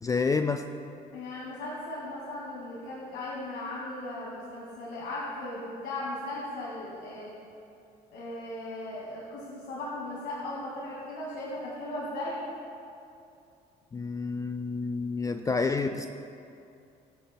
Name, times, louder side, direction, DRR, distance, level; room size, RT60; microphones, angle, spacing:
voice 1, 0.0-0.7 13.9-16.1, left 4 dB, 20° left, 8 dB, 0.3 m, -29 dB
voice 2, 1.1-7.3 8.1-12.5, left 1 dB, 80° left, -4 dB, 2.0 m, -37 dB
21.5 x 7.6 x 2.2 m, 2.6 s
cardioid pair, 110°, 17 cm